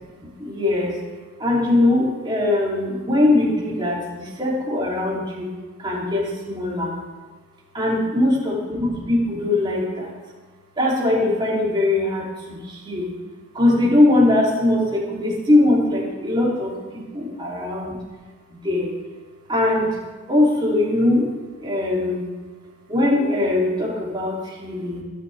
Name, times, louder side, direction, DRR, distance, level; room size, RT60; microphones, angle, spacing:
voice 1, 0.4-0.9 1.4-5.5 5.8-7.0 7.7-10.1 10.8-13.1 13.5-18.0 18.5-18.9 19.5-20.0 20.3-22.2 22.9-25.0, left 2 dB, 20° right, -5 dB, 3.4 m, -21 dB
23.0 x 9.7 x 3.6 m, 1.4 s
head